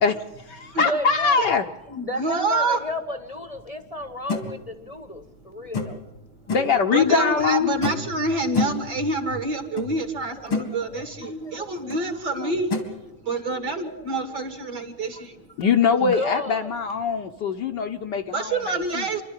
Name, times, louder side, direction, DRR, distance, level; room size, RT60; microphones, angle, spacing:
voice 1, 0.0-1.6 6.5-7.7 15.6-19.0, left 6 dB, 60° left, 3 dB, 1.4 m, -22 dB
voice 2, 0.8-1.7 2.0-6.0 7.1-7.4 8.3-8.4 10.3-10.8 11.2-12.6 16.0-16.8 19.1-19.2, left 1 dB, 20° left, 8 dB, 1.0 m, -33 dB
voice 3, 1.9-2.8 5.6-5.7 6.9-12.7 13.0-15.5 18.3-19.2, right 2 dB, 55° right, 7 dB, 2.9 m, -27 dB
sound 1, 4.3-4.5 5.7-6.1 6.5-6.8 7.8-8.2 8.5-8.9 9.8-9.9 10.3-10.7 11.9-12.0 12.7-12.9, left 3 dB, 90° left, 3.5 m, -27 dB
28.0 x 12.5 x 9.9 m, 1.0 s
omnidirectional pair, 2.3 m